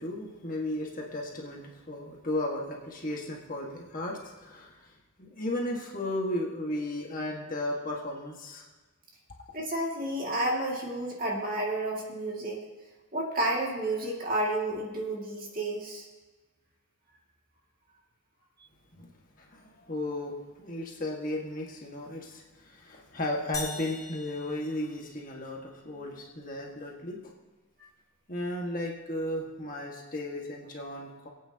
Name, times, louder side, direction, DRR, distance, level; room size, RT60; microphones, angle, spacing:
voice 1, 0.0-8.7 19.0-27.3 28.3-31.3, left 1 dB, 40° left, -1 dB, 1.7 m, -35 dB
voice 2, 9.5-12.6 13.1-16.1, right 1 dB, 40° right, -2 dB, 2.3 m, -31 dB
sound 1, 23.5-25.5, left 3 dB, 15° left, 1.6 m, -41 dB
23.5 x 8.9 x 2.9 m, 1.2 s
head